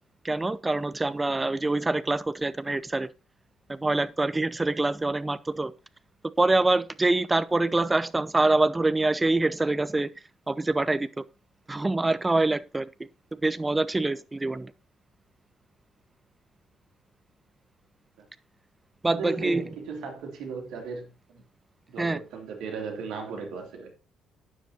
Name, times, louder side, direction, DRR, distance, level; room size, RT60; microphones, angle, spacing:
voice 1, 0.2-3.1 3.7-5.7 6.4-10.1 10.5-11.2 11.7-13.1 13.4-14.7 19.0-19.6 22.0-22.2, right 2 dB, 15° right, 0.7 m, -25 dB
voice 2, 19.1-21.4 21.9-23.9, right 5 dB, 60° right, 3.0 m, -36 dB
12.5 x 9.8 x 2.8 m
figure-of-eight pair, 45°, 0 cm